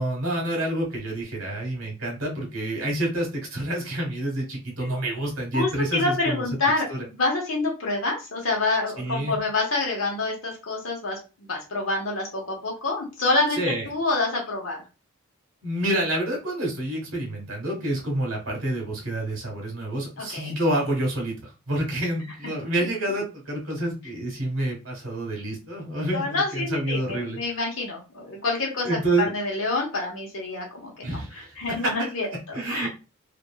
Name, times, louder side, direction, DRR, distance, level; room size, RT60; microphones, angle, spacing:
voice 1, 0.0-6.4 6.9-7.0 9.0-9.3 13.6-13.8 15.6-27.4 28.8-29.3 31.0-31.9 32.3-32.9, right 1 dB, 90° right, 0 dB, 1.3 m, -28 dB
voice 2, 5.5-14.8 20.2-20.5 26.1-28.9 29.2-31.2 31.6-32.3 32.7-32.9, left 2 dB, 75° left, 0 dB, 1.1 m, -27 dB
2.9 x 2.5 x 2.3 m, 0.30 s
head